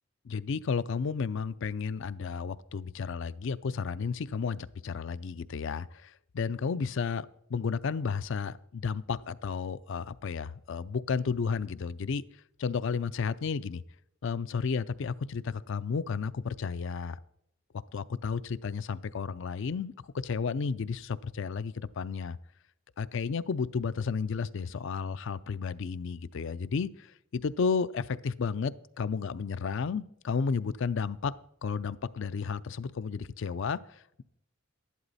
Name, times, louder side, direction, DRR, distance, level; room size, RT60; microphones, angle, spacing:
voice 1, 0.2-12.2 12.6-13.8 14.2-17.2 17.9-19.9 20.2-22.4 23.0-31.3 31.6-34.2, left 5 dB, 65° left, 16 dB, 0.4 m, -32 dB
12.0 x 11.0 x 4.1 m, 0.74 s
head